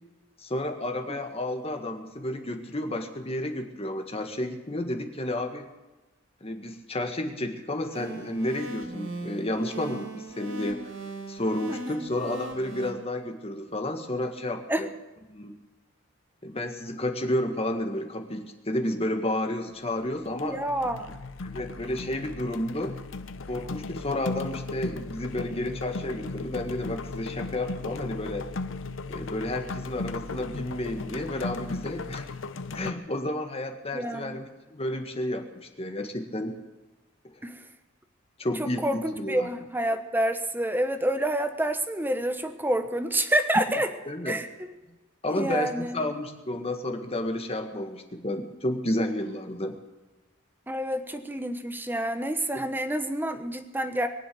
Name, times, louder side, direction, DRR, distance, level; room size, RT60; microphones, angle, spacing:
voice 1, 0.4-5.7 6.4-10.9 11.3-14.9 15.3-15.6 16.4-20.6 21.4-23.0 23.5-28.5 29.1-32.2 32.7-36.5 38.4-39.5 44.1-44.4 45.2-49.8 52.5-52.6, left 1 dB, 30° left, 5 dB, 1.7 m, -31 dB
sound 1, 7.9-12.9, right 2 dB, 80° right, 3.8 m, -39 dB
voice 2, 11.7-12.0 14.7-14.8 20.4-21.1 33.9-34.4 37.4-37.5 38.6-43.9 44.3-44.5 45.3-46.0 50.7-54.1, right 1 dB, 10° right, 7 dB, 1.1 m, -28 dB
sound 2, 19.7-20.0 20.2-32.9, left 3 dB, 70° left, 0.7 m, -36 dB
22.0 x 7.8 x 7.7 m, 1.1 s
head